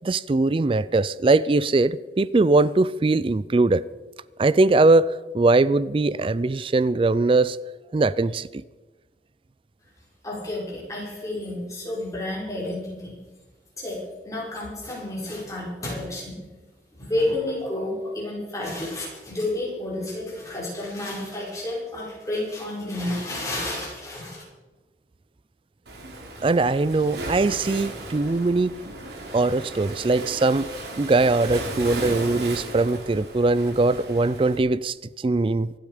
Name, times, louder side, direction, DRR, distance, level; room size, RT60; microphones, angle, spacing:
voice 1, 0.0-3.8 4.4-7.6 7.9-8.6 26.4-28.8 29.3-30.7 31.0-35.7, right 3 dB, 30° right, 0.4 m, -21 dB
voice 2, 10.2-13.1 13.8-14.0 14.2-16.4 17.0-24.4, left 1 dB, 20° left, 5.4 m, -30 dB
Waves surf, 25.9-34.6, right 2 dB, 70° right, 3.0 m, -36 dB
25.5 x 8.8 x 5.0 m
head